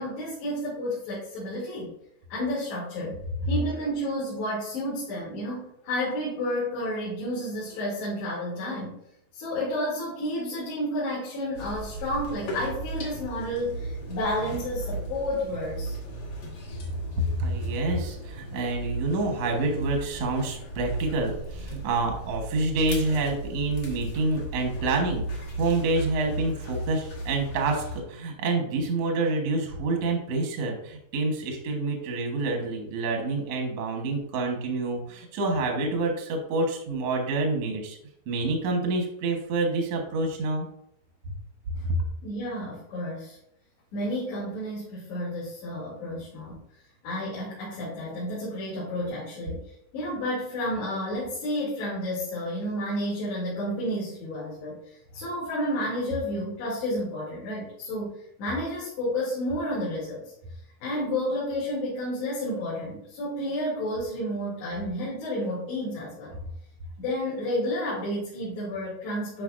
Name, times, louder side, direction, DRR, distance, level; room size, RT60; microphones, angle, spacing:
voice 1, 0.0-1.9 2.3-3.2 3.5-9.0 9.3-15.9 41.7-41.9 42.2-43.4 43.9-46.6 47.0-49.6 49.9-60.3 60.8-66.4 67.0-69.4, left 1 dB, 85° left, -9 dB, 4.9 m, -31 dB
sound 1, 11.6-28.0, right 2 dB, 50° left, 2.2 m, -36 dB
voice 2, 17.2-38.0 38.3-40.7, right 2 dB, 65° right, 2 dB, 1.6 m, -27 dB
12.0 x 5.1 x 2.6 m, 0.74 s
omnidirectional pair, 4.7 m